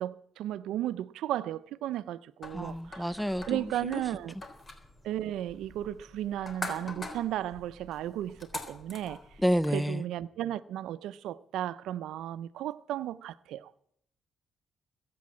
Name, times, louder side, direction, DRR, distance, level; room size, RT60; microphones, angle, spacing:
voice 1, 0.0-3.1 3.5-4.3 5.0-9.2 9.7-13.7, right 12 dB, 85° right, 0.6 m, -34 dB
sound 1, 2.4-9.7, left 2 dB, 30° left, 3.4 m, -44 dB
voice 2, 2.5-4.0 9.4-10.0, equal, ahead, 0.5 m, -29 dB
21.5 x 8.7 x 7.4 m
cardioid pair, 90°, 0 cm